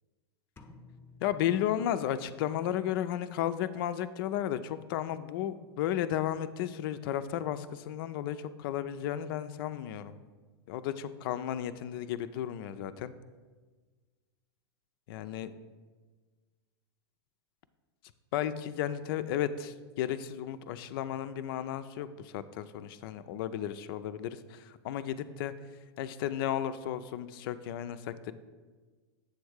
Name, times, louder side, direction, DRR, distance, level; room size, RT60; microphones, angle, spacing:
sound 1, 0.6-2.4, left 3 dB, 15° left, 0.7 m, -55 dB
voice 1, 1.2-10.2 10.7-13.1 15.1-15.5 18.3-25.5 26.0-28.3, left 11 dB, 55° left, 12 dB, 0.4 m, -34 dB
7.8 x 3.5 x 6.4 m, 1.4 s
hypercardioid pair, 100°, 14 cm